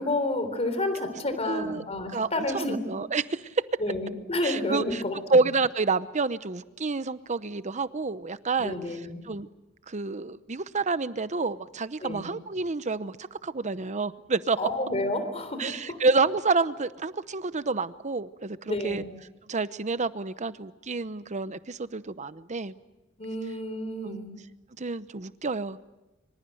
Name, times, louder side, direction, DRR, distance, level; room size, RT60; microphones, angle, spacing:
voice 1, 0.0-2.8 3.8-5.2 8.6-9.2 12.0-12.3 14.6-16.0 18.7-19.1 23.2-24.3, left 1 dB, 30° left, 10 dB, 3.5 m, -30 dB
voice 2, 1.5-1.8 2.1-3.6 4.4-5.0 5.3-8.8 9.2-9.5 9.9-14.6 15.6-19.0 19.5-22.7 24.0-24.2 24.8-25.8, right 3 dB, 35° right, 14 dB, 0.8 m, -28 dB
25.0 x 25.0 x 7.9 m, 1.0 s
head